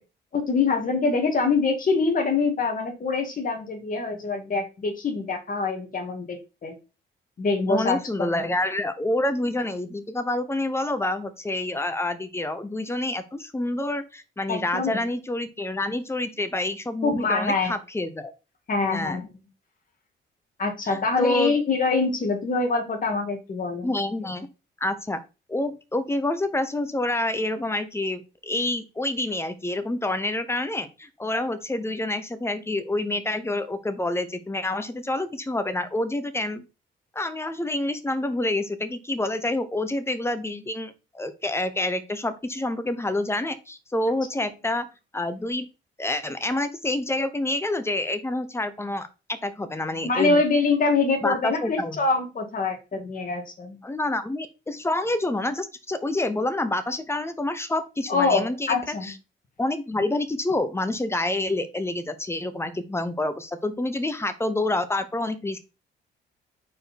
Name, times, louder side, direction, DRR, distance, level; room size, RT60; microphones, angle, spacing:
voice 1, 0.3-6.7 7.4-8.4 14.5-15.0 17.0-17.7 18.7-19.2 20.6-23.9 50.0-53.8 58.1-59.1, left 4 dB, 45° left, 3 dB, 2.1 m, -24 dB
voice 2, 7.7-18.3 18.8-19.3 20.8-21.6 23.8-24.5 24.8-25.2 25.5-36.7 37.1-44.9 45.1-45.7 46.0-50.4 51.2-52.0 53.8-59.1 59.6-65.6, left 2 dB, 15° left, 10 dB, 0.9 m, -28 dB
5.0 x 4.6 x 4.3 m, 0.30 s
cardioid pair, 90°, 20 cm